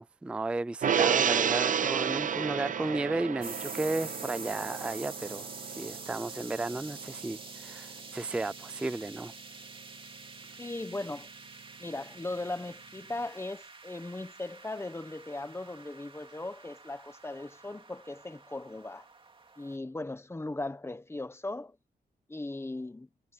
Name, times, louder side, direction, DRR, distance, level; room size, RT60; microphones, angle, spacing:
voice 1, 0.0-9.3, right 2 dB, 5° right, 0.3 m, -34 dB
Gong, 0.8-7.4 7.8-7.9, right 8 dB, 50° right, 0.6 m, -31 dB
sound 1, 3.4-19.8, right 3 dB, 30° right, 2.3 m, -47 dB
voice 2, 10.6-11.3 11.8-19.1 19.6-21.8 22.3-23.1, left 2 dB, 15° left, 1.2 m, -38 dB
wide cardioid pair, 130°, 17 cm